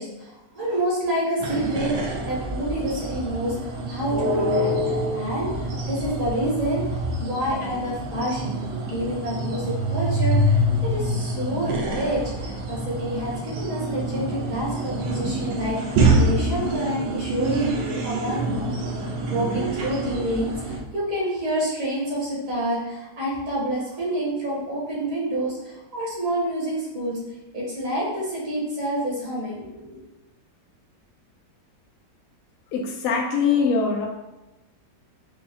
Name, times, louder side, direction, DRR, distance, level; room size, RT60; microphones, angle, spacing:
voice 1, 0.0-18.8 19.3-27.2 27.5-30.0, equal, 55° right, -6 dB, 1.4 m, -28 dB
sound 1, 1.4-20.8, right 1 dB, 80° right, 1.3 m, -26 dB
voice 2, 32.7-34.1, left 5 dB, 70° left, -1 dB, 0.8 m, -22 dB
4.9 x 2.3 x 2.7 m, 1.0 s
omnidirectional pair, 1.9 m